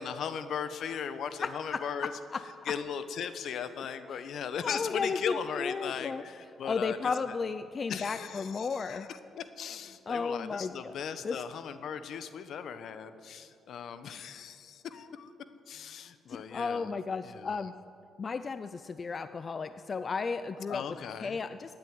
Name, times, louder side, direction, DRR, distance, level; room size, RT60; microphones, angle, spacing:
voice 1, 0.0-2.1 2.7-7.4 7.9-9.1 9.4-15.3 15.7-16.9 17.2-17.6 20.7-21.4, left 7 dB, 70° left, 11 dB, 1.1 m, -38 dB
voice 2, 1.4-1.8 2.3-2.4 4.1-4.3 4.6-6.2 6.6-9.1 10.1-10.9 11.2-11.4 16.3-17.7 18.2-20.8 21.2-21.8, left 5 dB, 40° left, 11 dB, 0.5 m, -34 dB
16.0 x 9.5 x 9.4 m, 2.5 s
cardioid pair, 90°, 0 cm